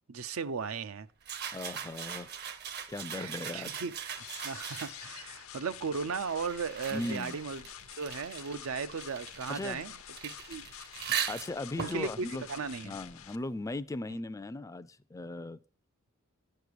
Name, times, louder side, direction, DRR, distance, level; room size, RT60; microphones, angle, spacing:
voice 1, 0.1-1.1 3.2-3.9 4.4-7.6 8.0-9.9 10.2-10.6 11.8-13.0, right 5 dB, 85° right, 0.6 m, -36 dB
sound 1, 1.2-5.2 6.0-13.4, right 8 dB, 50° right, 0.8 m, -40 dB
voice 2, 1.5-2.5 2.9-3.8 6.9-7.4 9.5-9.8 11.3-12.4 12.8-15.6, left 2 dB, 15° left, 0.4 m, -38 dB
sound 2, 4.1-13.4, left 11 dB, 75° left, 0.6 m, -48 dB
9.5 x 6.7 x 4.7 m
head